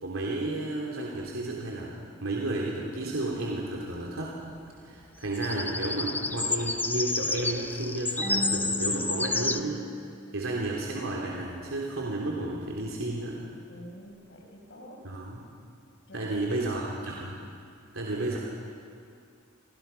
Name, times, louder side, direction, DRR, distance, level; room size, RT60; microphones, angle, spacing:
voice 1, 0.0-4.3 4.8-9.8 10.3-13.4 15.0-15.5 16.1-17.3 17.9-18.4, right 2 dB, 80° right, -3 dB, 3.1 m, -32 dB
sound 1, 5.3-9.6, left 3 dB, 10° left, 0.7 m, -30 dB
Marimba xylophone / Wood, 8.2-11.0, right 1 dB, 10° right, 1.2 m, -38 dB
voice 2, 13.7-15.0 16.1-16.9, equal, 60° left, 1 dB, 5.7 m, -48 dB
29.0 x 25.5 x 5.8 m, 2.3 s
head